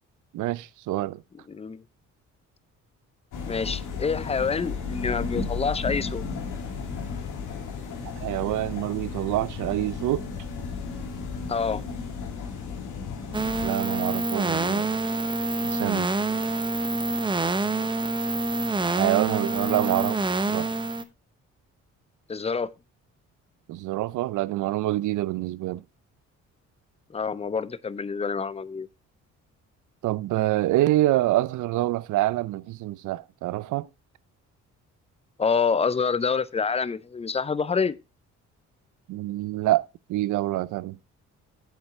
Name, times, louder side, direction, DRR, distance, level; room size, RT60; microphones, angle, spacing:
voice 1, 0.3-1.2 8.2-10.3 13.6-14.9 15.6-16.1 18.8-20.7 23.7-25.8 30.0-33.9 39.1-41.0, right 16 dB, 80° right, 0.6 m, -26 dB
voice 2, 1.5-1.8 3.4-6.2 11.5-11.8 22.3-22.7 27.1-28.9 35.4-38.0, left 5 dB, 20° left, 0.6 m, -27 dB
sound 1, 3.3-13.7, left 5 dB, 85° left, 2.4 m, -34 dB
sound 2, 13.3-21.0, right 2 dB, 15° right, 0.9 m, -26 dB
8.5 x 7.8 x 3.6 m
cardioid pair, 90°, 30 cm